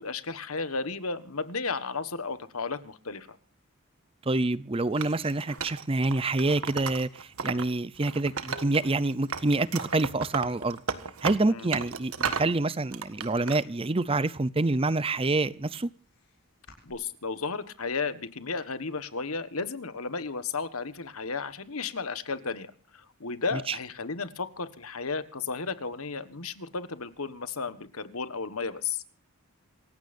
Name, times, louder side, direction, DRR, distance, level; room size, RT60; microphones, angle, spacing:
voice 1, 0.0-3.4 11.5-11.7 16.8-29.0, left 4 dB, 80° left, 1.5 m, -34 dB
voice 2, 4.3-10.8 11.2-15.9 23.5-23.8, right 2 dB, 25° right, 0.6 m, -27 dB
Wood, 5.0-7.6 8.0-9.0 9.3-12.5 12.9-13.6, right 5 dB, 80° right, 1.6 m, -34 dB
sound 1, 5.6-5.7 6.1-11.8 12.0-12.5 12.8-14.0 14.4-16.9, equal, 55° left, 6.9 m, -55 dB
27.5 x 15.5 x 2.6 m
head